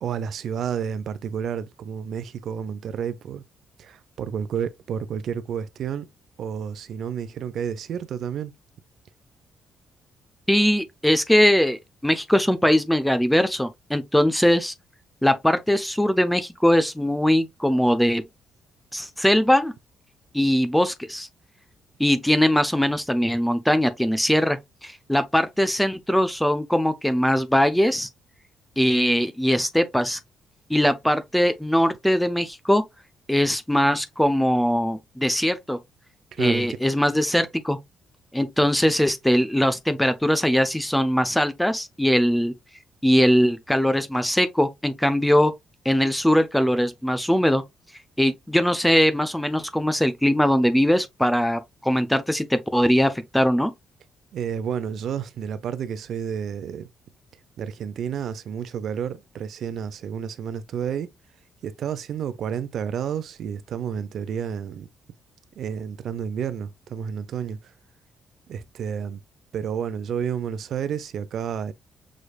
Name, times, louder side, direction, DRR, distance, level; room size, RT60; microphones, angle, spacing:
voice 1, 0.0-3.4 3.8-6.1 6.4-8.5 36.3-36.7 54.3-56.9 57.6-61.1 61.6-64.9 65.6-67.7 68.5-69.2 69.5-71.7, right 8 dB, 65° right, 0.7 m, -30 dB
voice 2, 10.5-14.7 15.2-18.2 18.9-19.7 20.3-21.3 22.0-28.1 28.8-30.2 30.7-32.8 33.3-35.8 36.4-37.8 38.3-42.5 43.0-45.5 45.8-47.6 48.2-53.7, equal, 5° left, 0.8 m, -21 dB
6.4 x 3.2 x 2.4 m
cardioid pair, 90°, 0 cm